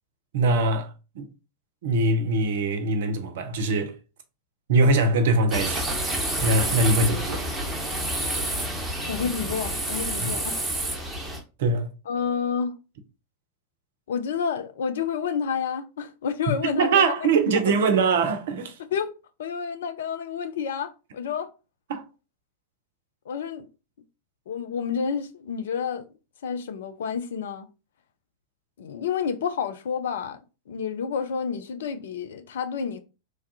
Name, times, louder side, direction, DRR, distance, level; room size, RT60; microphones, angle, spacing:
voice 1, 0.3-0.9 1.1-1.2 1.8-3.9 4.7-5.9 6.4-7.5 10.2-10.3 11.6-11.9 16.6-18.8 21.9-22.0, right 3 dB, 55° right, 0.6 m, -22 dB
sound 1, 5.5-11.4, right 1 dB, 10° right, 1.0 m, -28 dB
voice 2, 9.1-10.6 12.1-12.8 14.1-17.3 17.7-17.8 18.9-19.1 19.4-21.5 23.3-23.7 24.5-26.1 26.4-27.7 28.8-30.4 30.7-33.0, left 6 dB, 60° left, 0.4 m, -29 dB
3.2 x 2.3 x 2.7 m
figure-of-eight pair, 90°, 0 cm